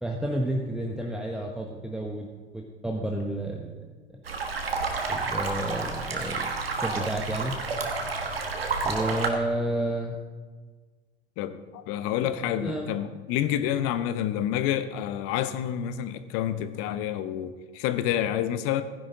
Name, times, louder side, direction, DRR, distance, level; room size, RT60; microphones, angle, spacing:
voice 1, 0.0-2.3 2.5-3.7 4.1-4.2 5.1-7.6 8.8-10.2 12.6-12.9, right 1 dB, ahead, 0 dB, 1.1 m, -31 dB
sound 1, 4.3-9.3, right 4 dB, 85° right, 1.5 m, -30 dB
voice 2, 11.4-18.8, left 11 dB, 50° left, 12 dB, 0.9 m, -28 dB
15.5 x 10.5 x 3.9 m, 1.4 s
figure-of-eight pair, 75°, 29 cm